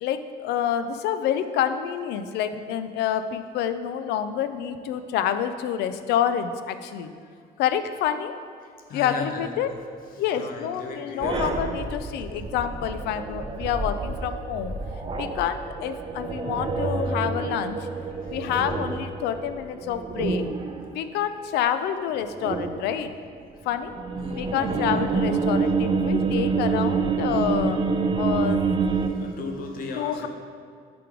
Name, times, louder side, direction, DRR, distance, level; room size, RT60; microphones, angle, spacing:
voice 1, 0.0-7.1 7.6-8.3 8.9-9.7 10.1-14.7 15.2-17.9 18.3-20.4 20.9-23.1 23.6-23.9 24.4-27.8 28.1-28.6 30.0-30.3, left 9 dB, 80° left, 11 dB, 0.4 m, -28 dB
voice 2, 8.6-9.7 10.1-11.5 18.2-18.4 24.2-25.0 29.1-30.3, left 3 dB, 55° left, 3 dB, 0.8 m, -37 dB
sound 1, 11.2-20.9 22.2-23.1 23.7-29.1, right 4 dB, 30° right, 0.5 m, -27 dB
5.1 x 5.0 x 4.5 m, 2.2 s
cardioid pair, 110°, 17 cm